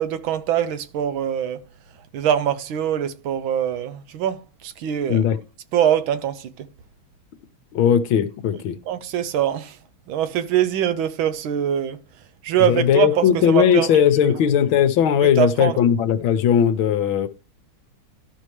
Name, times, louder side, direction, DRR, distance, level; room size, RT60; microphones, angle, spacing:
voice 1, 0.0-1.6 2.1-5.2 5.7-6.7 8.9-9.8 10.1-12.0 12.4-14.4 15.4-15.8, right 10 dB, 80° right, 1.5 m, -23 dB
voice 2, 7.7-8.8 12.7-17.3, left 9 dB, 80° left, 1.6 m, -18 dB
12.0 x 5.5 x 3.2 m
omnidirectional pair, 2.3 m